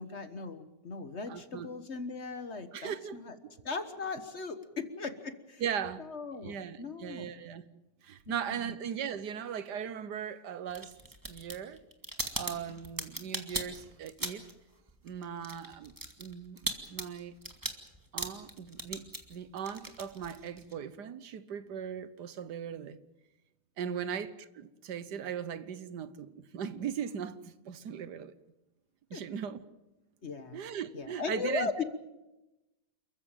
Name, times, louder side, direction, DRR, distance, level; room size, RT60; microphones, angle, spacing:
voice 1, 0.0-3.4 3.6-5.6 6.0-7.3 8.3-8.7 23.8-24.1 29.1-29.2 30.2-30.6 30.9-31.8, left 4 dB, 45° left, 1.5 m, -38 dB
voice 2, 1.3-1.7 2.7-3.2 5.6-6.0 6.4-7.6 8.0-10.9 11.3-11.8 12.3-14.4 15.0-15.9 16.2-17.3 18.1-23.0 23.8-28.3 29.1-29.6 30.5-31.8, right 8 dB, 75° right, 1.6 m, -38 dB
sound 1, 10.7-14.6 14.9-20.7, right 1 dB, 10° right, 1.9 m, -39 dB
28.5 x 15.0 x 9.0 m
omnidirectional pair, 1.8 m